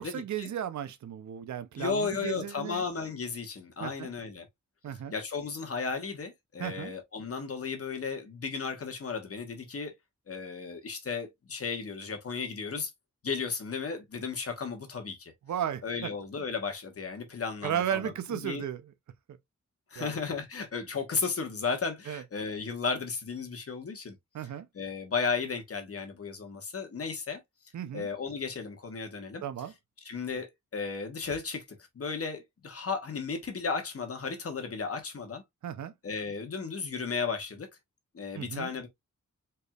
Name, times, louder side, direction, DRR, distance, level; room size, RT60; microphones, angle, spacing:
voice 1, 0.0-2.8 3.8-4.1 4.8-5.1 6.6-6.9 15.5-16.1 17.6-18.8 20.0-20.1 22.1-22.2 24.3-24.7 27.7-28.1 29.4-29.7 35.6-35.9 38.3-38.7, right 9 dB, 70° right, 0.5 m, -34 dB
voice 2, 1.8-4.5 5.1-9.9 10.3-12.9 13.2-15.3 15.8-18.6 19.9-24.2 24.7-27.4 27.9-29.4 30.0-35.4 36.0-37.7 38.1-38.9, left 5 dB, 50° left, 1.1 m, -34 dB
4.4 x 3.3 x 2.3 m
wide cardioid pair, 165°, 30 cm